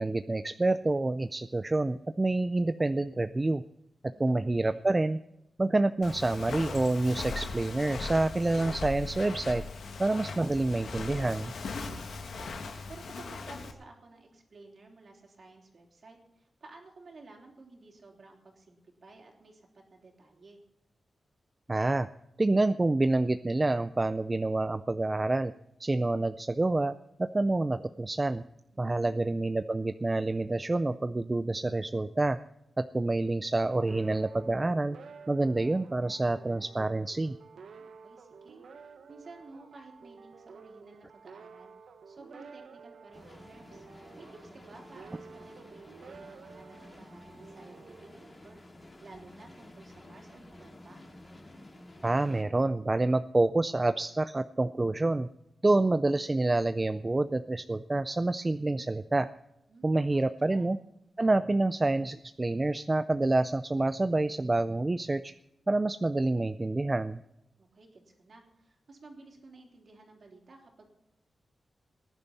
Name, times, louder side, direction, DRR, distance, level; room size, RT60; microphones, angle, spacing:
voice 1, 0.0-3.6 4.2-5.2 5.6-9.6 10.0-11.5 21.7-22.1 22.4-25.5 25.8-28.4 28.8-32.4 32.8-35.0 35.3-37.4 52.0-55.3 55.6-59.3 59.8-60.8 61.2-65.3 65.7-67.2, right 2 dB, 20° right, 11 dB, 0.4 m, -27 dB
voice 2, 4.0-4.8 11.8-12.5 12.9-20.6 28.7-29.3 37.6-41.7 42.1-43.9 44.2-48.6 49.0-51.0 59.7-60.7 67.6-70.9, right 3 dB, 45° right, 1 dB, 3.4 m, -53 dB
Walk footsteps, 6.0-13.7, left 4 dB, 80° left, 1.9 m, -39 dB
sound 1, 33.6-48.9, right 5 dB, 85° right, 1.1 m, -51 dB
sound 2, 43.1-52.4, left 1 dB, 25° left, 2.4 m, -52 dB
19.5 x 10.5 x 4.2 m, 0.83 s
wide cardioid pair, 155°, 0 cm